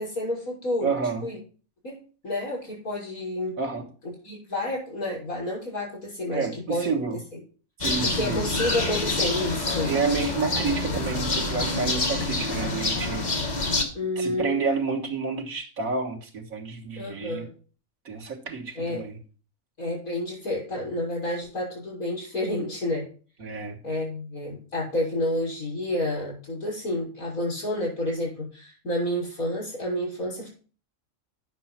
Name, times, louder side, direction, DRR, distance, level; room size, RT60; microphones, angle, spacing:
voice 1, 0.0-0.9 1.2-1.4 1.8-3.6 4.2-6.9 7.3-7.4 8.0-9.9 13.9-14.6 17.0-17.5 18.8-19.0 19.8-23.1 23.8-30.5, left 1 dB, 80° left, 6.5 m, -30 dB
voice 2, 0.8-1.3 3.6-3.9 6.3-7.2 7.8-8.4 9.8-13.7 14.2-17.5 18.1-19.2 23.4-23.8, right 4 dB, 80° right, 2.1 m, -29 dB
sound 1, 7.8-13.8, left 2 dB, 30° left, 1.7 m, -27 dB
10.0 x 6.2 x 5.8 m
omnidirectional pair, 1.4 m